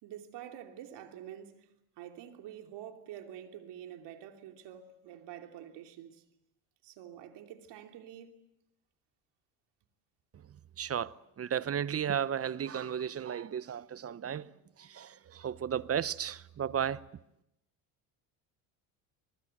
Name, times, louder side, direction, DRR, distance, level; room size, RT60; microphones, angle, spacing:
voice 1, 0.0-6.2 6.8-8.3, right 10 dB, 65° right, 3.2 m, -47 dB
voice 2, 10.8-14.5 14.8-17.0, right 8 dB, 30° right, 0.9 m, -34 dB
23.5 x 23.0 x 8.0 m
supercardioid pair, 80°, 44 cm